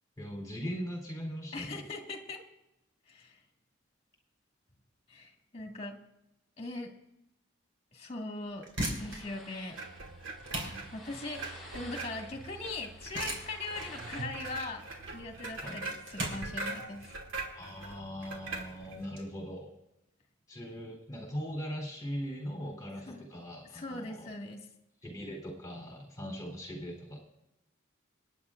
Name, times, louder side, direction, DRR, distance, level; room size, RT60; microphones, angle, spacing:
voice 1, 0.2-1.8 15.6-15.8 17.5-19.7 20.5-24.3 25.0-27.2, equal, 15° left, -1 dB, 3.6 m, -40 dB
voice 2, 1.5-2.4 3.1-3.4 5.1-6.0 6.6-6.9 7.9-9.8 10.9-14.8 15.1-17.1 23.1-23.2 23.7-24.7, left 2 dB, 30° left, 2 dB, 1.9 m, -40 dB
sound 1, 8.4-19.2, right 1 dB, 70° right, 4.6 m, -41 dB
sound 2, 8.9-14.2, left 1 dB, ahead, 4.4 m, -51 dB
sound 3, 9.7-19.1, right 3 dB, 90° right, 2.6 m, -43 dB
28.0 x 9.8 x 2.5 m, 0.88 s
head